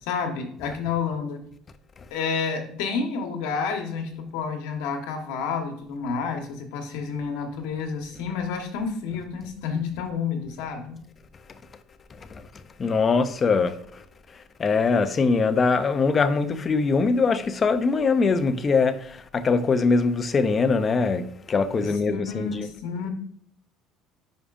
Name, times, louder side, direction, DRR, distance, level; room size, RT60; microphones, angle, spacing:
voice 1, 0.0-1.4 2.1-11.0 21.8-23.1, left 5 dB, 85° left, 1.3 m, -30 dB
voice 2, 12.1-12.4 12.8-14.0 14.3-22.7, left 4 dB, 30° left, 0.6 m, -22 dB
10.0 x 4.9 x 2.6 m
cardioid pair, 125°, 0 cm